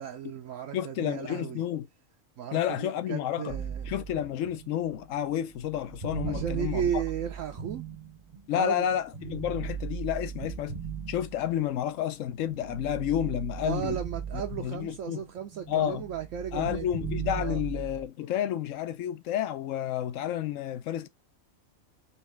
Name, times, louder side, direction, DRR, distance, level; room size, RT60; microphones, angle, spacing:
voice 1, 0.0-1.6 2.4-4.0 6.3-7.8 8.5-8.9 13.6-16.8 17.4-17.6, right 9 dB, 75° right, 1.0 m, -35 dB
voice 2, 0.7-1.9 2.5-3.6 3.9-7.0 8.5-10.8 11.1-14.0 14.3-15.2 15.7-16.0 16.5-21.1, left 11 dB, 70° left, 1.0 m, -30 dB
sound 1, 3.5-8.6 9.1-11.8 12.3-15.1 15.4-18.1, right 7 dB, 40° right, 0.6 m, -38 dB
4.2 x 3.1 x 3.3 m
omnidirectional pair, 1.4 m